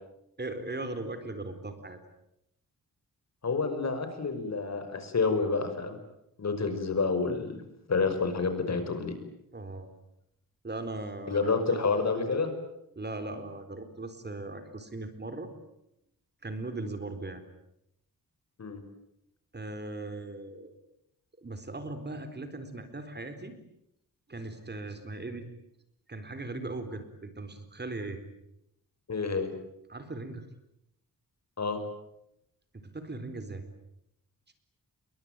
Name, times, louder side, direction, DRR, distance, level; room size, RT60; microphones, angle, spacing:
voice 1, 0.4-2.0 9.5-9.9 10.6-11.8 13.0-15.5 16.4-17.4 19.5-20.7 21.4-23.6 24.3-25.5 26.1-28.2 29.9-30.5 32.7-33.7, right 2 dB, 30° right, 9 dB, 4.2 m, -38 dB
voice 2, 3.4-6.0 6.4-7.6 7.9-9.1 11.3-12.5 18.6-18.8 29.1-29.5 31.6-31.8, left 4 dB, 50° left, 8 dB, 5.8 m, -29 dB
28.5 x 23.0 x 9.1 m, 0.81 s
wide cardioid pair, 105°, 34 cm